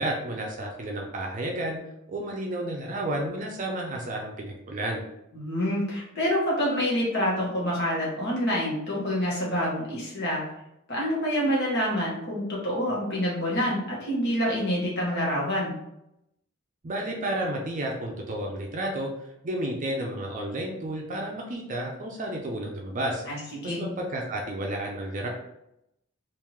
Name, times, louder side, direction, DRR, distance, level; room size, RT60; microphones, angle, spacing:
voice 1, 0.0-1.8 2.1-5.0 16.8-19.1 19.4-23.2 23.6-25.3, right 1 dB, 40° right, 0 dB, 0.5 m, -31 dB
voice 2, 5.3-10.4 10.9-15.7 23.3-23.4 23.6-23.8, equal, 55° left, -5 dB, 1.4 m, -27 dB
3.6 x 2.6 x 3.0 m, 0.82 s
head